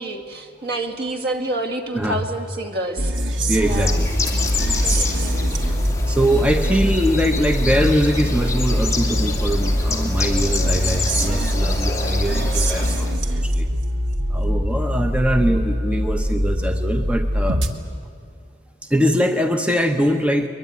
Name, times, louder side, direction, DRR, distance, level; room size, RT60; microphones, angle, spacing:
voice 1, 0.0-3.1 3.6-4.0 4.8-5.4 6.6-6.8, right 1 dB, 55° right, 4 dB, 2.3 m, -28 dB
sound 1, 3.0-17.7, equal, 80° right, 1.7 m, -23 dB
Bird, 3.5-13.2, left 3 dB, 15° left, 2.4 m, -27 dB
voice 2, 3.5-4.1 5.7-5.8 6.1-13.7 14.3-17.6 18.9-20.5, equal, 5° right, 6 dB, 0.9 m, -22 dB
22.5 x 22.0 x 9.4 m, 2.5 s
head